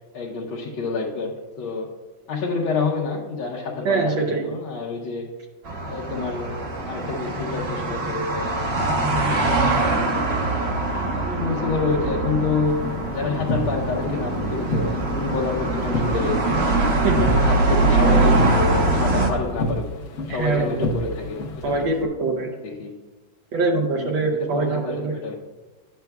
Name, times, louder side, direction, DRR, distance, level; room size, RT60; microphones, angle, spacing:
voice 1, 0.1-1.9 2.3-5.3 5.9-9.6 10.1-16.6 17.1-19.9 20.3-21.9 22.6-23.0 24.0-25.4, left 4 dB, 80° left, -3 dB, 1.6 m, -28 dB
voice 2, 3.8-4.5 17.0-17.3 20.3-20.9 21.6-22.5 23.5-25.1, right 3 dB, 75° right, 0 dB, 1.5 m, -23 dB
sound 1, 5.6-19.3, right 2 dB, 45° right, 0.9 m, -23 dB
sound 2, 12.7-22.0, left 1 dB, 60° left, 0.7 m, -30 dB
11.5 x 7.8 x 2.3 m, 1.2 s
omnidirectional pair, 2.1 m